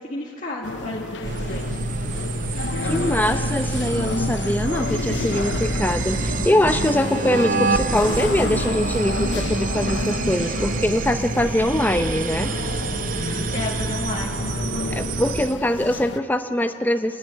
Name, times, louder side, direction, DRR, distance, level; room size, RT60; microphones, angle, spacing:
voice 1, 0.0-1.7 13.5-14.5, left 2 dB, 40° left, -5 dB, 1.9 m, -32 dB
sound 1, 0.6-16.2, left 3 dB, 65° left, 0.7 m, -31 dB
sound 2, 1.2-15.6, right 3 dB, 45° right, 0.6 m, -27 dB
voice 2, 2.8-12.5 14.9-17.2, left 1 dB, 10° left, 7 dB, 0.7 m, -23 dB
29.0 x 10.5 x 9.8 m, 2.7 s
head